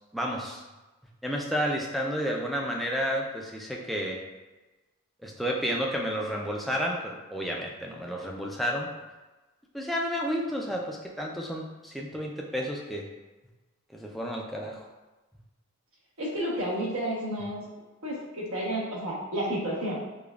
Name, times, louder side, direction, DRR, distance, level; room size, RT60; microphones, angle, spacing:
voice 1, 0.1-0.6 1.2-4.2 5.2-8.9 9.7-13.1 13.9-14.9, equal, ahead, -2 dB, 0.3 m, -31 dB
voice 2, 16.2-17.7 18.0-20.0, right 1 dB, 75° right, -4 dB, 1.0 m, -31 dB
5.0 x 2.3 x 2.4 m, 1.2 s
head